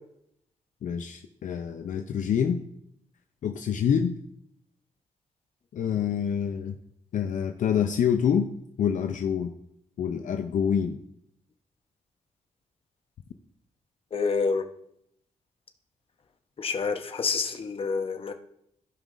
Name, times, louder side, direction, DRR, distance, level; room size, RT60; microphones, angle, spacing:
voice 1, 0.8-2.6 3.4-4.1 5.7-6.8 7.1-9.5 10.0-11.0, left 8 dB, 65° left, 6 dB, 0.5 m, -26 dB
voice 2, 14.1-14.6 16.6-18.3, left 5 dB, 40° left, 6 dB, 0.8 m, -28 dB
15.5 x 5.4 x 2.5 m, 0.73 s
cardioid pair, 115°, 14 cm